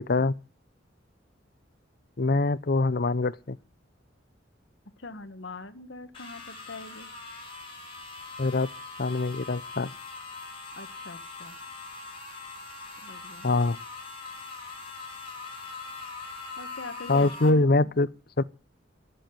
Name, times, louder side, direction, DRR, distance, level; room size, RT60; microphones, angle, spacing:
voice 1, 2.2-3.6 8.4-8.7 9.0-9.9 13.4-13.8 17.1-18.1 18.4-18.5, left 2 dB, 55° left, 0.7 m, -24 dB
voice 2, 5.0-7.1 10.8-11.6 13.0-13.5 16.6-17.9, left 3 dB, 75° left, 1.7 m, -43 dB
sound 1, 6.1-17.5, left 3 dB, 30° left, 6.8 m, -42 dB
18.5 x 7.8 x 9.4 m
head